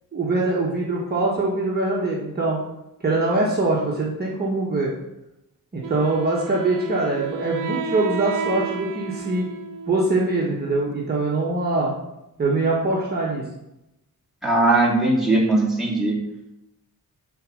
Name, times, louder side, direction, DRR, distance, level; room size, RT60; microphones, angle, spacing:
voice 1, 0.1-2.6 3.0-4.9 5.7-9.5 9.9-11.9 12.4-13.4, right 2 dB, 30° right, -5 dB, 1.3 m, -23 dB
Wind instrument woodwind instrument, 5.8-10.6, right 6 dB, 65° right, 0.8 m, -33 dB
voice 2, 14.4-16.2, right 2 dB, ahead, -5 dB, 2.2 m, -19 dB
11.0 x 4.1 x 6.3 m, 0.91 s
wide cardioid pair, 180°, 34 cm